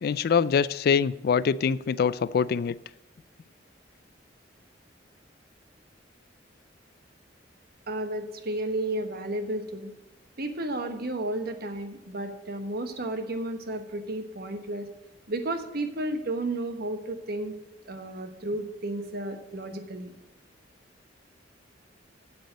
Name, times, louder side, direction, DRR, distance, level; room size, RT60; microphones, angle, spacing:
voice 1, 0.0-2.8, left 6 dB, 55° left, 19 dB, 0.3 m, -24 dB
voice 2, 7.9-9.9 10.4-14.9 15.3-17.5 17.9-20.1, right 1 dB, 55° right, 7 dB, 1.2 m, -32 dB
9.2 x 7.1 x 7.7 m, 0.94 s
head